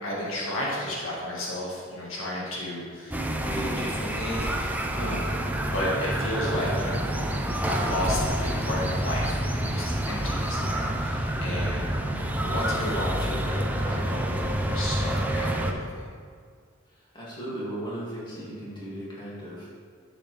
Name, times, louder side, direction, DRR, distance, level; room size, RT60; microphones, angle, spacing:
voice 1, 0.0-5.4 5.7-7.1 7.7-16.0, left 1 dB, 75° left, -4 dB, 1.9 m, -33 dB
sound 1, 3.1-15.7, right 1 dB, 10° right, 0.6 m, -28 dB
voice 2, 17.0-19.7, right 1 dB, 25° left, -7 dB, 2.5 m, -36 dB
10.5 x 7.4 x 3.4 m, 2.1 s
head